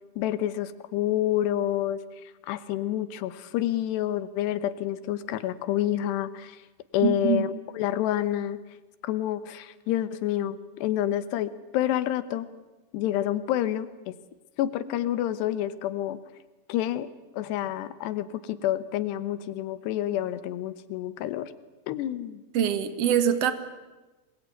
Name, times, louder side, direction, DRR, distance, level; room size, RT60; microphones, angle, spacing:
voice 1, 0.2-2.0 2.5-6.6 6.9-7.5 7.8-8.6 9.0-12.5 12.9-14.2 14.6-16.2 16.7-17.1 17.3-21.5 21.9-22.4, left 12 dB, 80° left, 14 dB, 3.2 m, -28 dB
voice 2, 7.0-7.5 22.5-23.5, right 8 dB, 55° right, 11 dB, 1.8 m, -24 dB
26.0 x 21.0 x 9.4 m, 1.1 s
omnidirectional pair, 4.8 m